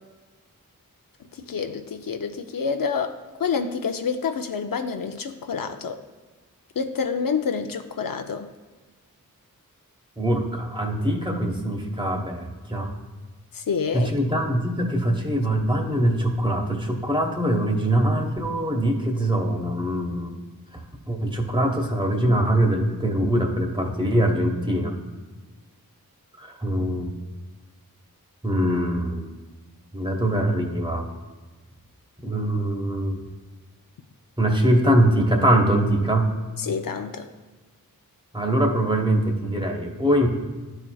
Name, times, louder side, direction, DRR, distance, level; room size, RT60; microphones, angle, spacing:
voice 1, 1.3-6.0 6.8-8.5 13.5-14.1 36.6-37.3, left 5 dB, 70° left, 7 dB, 0.5 m, -28 dB
voice 2, 10.2-12.9 13.9-20.3 21.1-24.9 26.4-27.1 28.4-29.2 29.9-31.1 32.2-33.2 34.4-36.3 38.3-40.3, right 1 dB, 15° right, 2 dB, 1.0 m, -23 dB
10.5 x 4.5 x 2.2 m, 1.3 s
wide cardioid pair, 50°, 36 cm